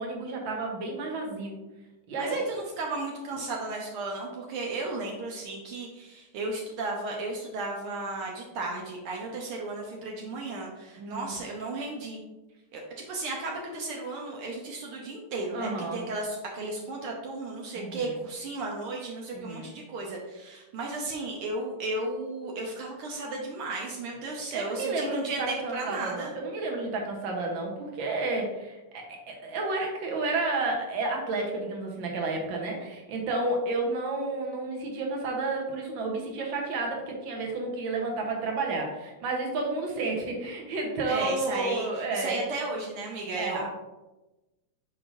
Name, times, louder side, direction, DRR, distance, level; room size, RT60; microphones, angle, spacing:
voice 1, 0.0-1.6 2.1-2.4 11.0-11.4 15.5-16.0 17.7-18.1 19.3-19.7 24.2-42.4 43.4-43.7, right 3 dB, 65° right, 1 dB, 1.2 m, -31 dB
voice 2, 2.2-12.2 12.7-26.4 41.1-43.7, right 2 dB, 85° right, -1 dB, 1.2 m, -34 dB
7.8 x 4.7 x 2.6 m, 1.0 s
omnidirectional pair, 3.5 m